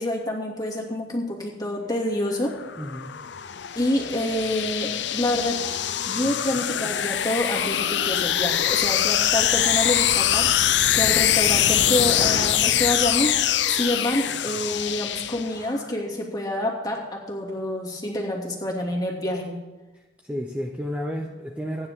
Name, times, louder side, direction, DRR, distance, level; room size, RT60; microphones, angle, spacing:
voice 1, 0.0-2.5 3.7-5.6 6.1-13.4 13.7-19.6, left 1 dB, 20° left, -1 dB, 2.5 m, -27 dB
sound 1, 2.3-15.8, left 11 dB, 85° left, 0.6 m, -23 dB
voice 2, 2.8-3.1 20.2-21.9, equal, 5° right, 1 dB, 0.9 m, -31 dB
25.5 x 9.6 x 3.7 m, 1.2 s
head